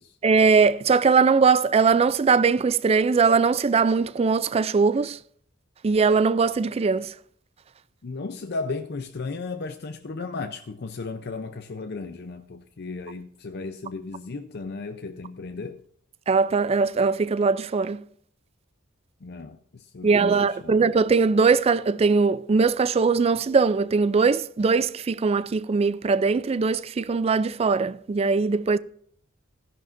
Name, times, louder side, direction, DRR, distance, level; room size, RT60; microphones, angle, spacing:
voice 1, 0.2-5.2 5.8-7.1 16.3-18.0 20.0-28.8, right 4 dB, 30° right, 0.3 m, -21 dB
voice 2, 8.0-15.8 19.2-20.8, left 3 dB, 50° left, 0.6 m, -35 dB
16.0 x 10.5 x 2.6 m
head